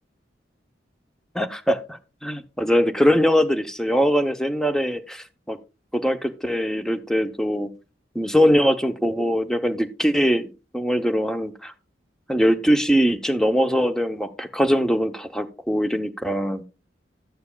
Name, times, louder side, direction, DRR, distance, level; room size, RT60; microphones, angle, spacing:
voice 1, 1.3-5.6 5.9-7.7 8.1-11.7 12.3-16.6, equal, 5° left, 9 dB, 0.7 m, -22 dB
12.5 x 9.4 x 2.3 m, 0.30 s
head